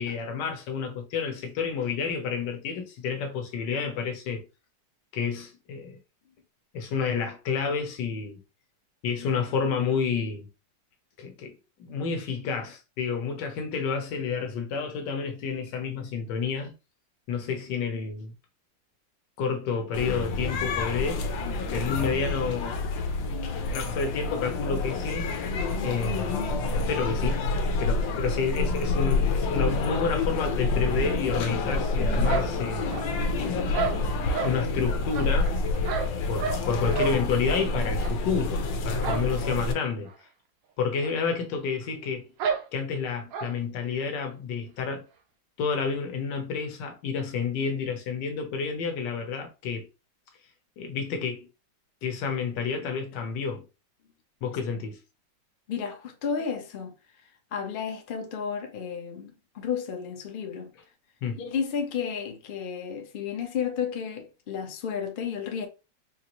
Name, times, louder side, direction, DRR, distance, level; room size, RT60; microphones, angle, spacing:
voice 1, 0.0-4.4 5.1-6.0 6.7-8.4 9.0-10.5 11.2-16.7 17.3-18.3 19.4-21.2 21.7-22.8 23.7-25.3 25.8-26.4 26.7-27.4 27.8-32.9 33.4-33.9 34.4-35.5 36.3-40.1 40.8-42.3 42.7-45.0 45.6-49.9 50.8-51.5 52.0-53.6 54.4-55.0 61.2-61.5, left 5 dB, 75° left, 1.4 m, -30 dB
sound 1, 19.9-39.7, left 3 dB, 90° left, 1.5 m, -28 dB
sound 2, 32.2-33.3 33.7-34.6 35.1-36.7 36.9-37.2 37.5-37.7 38.0-38.1 39.0-39.3 39.6-39.7 40.1-40.2 41.0-41.1 41.4-41.5 42.4-42.7 43.3-43.5, right 6 dB, 85° right, 1.3 m, -31 dB
voice 2, 55.7-56.9 57.5-60.7 61.4-65.7, left 7 dB, 55° left, 0.5 m, -32 dB
4.5 x 2.5 x 3.0 m
omnidirectional pair, 2.0 m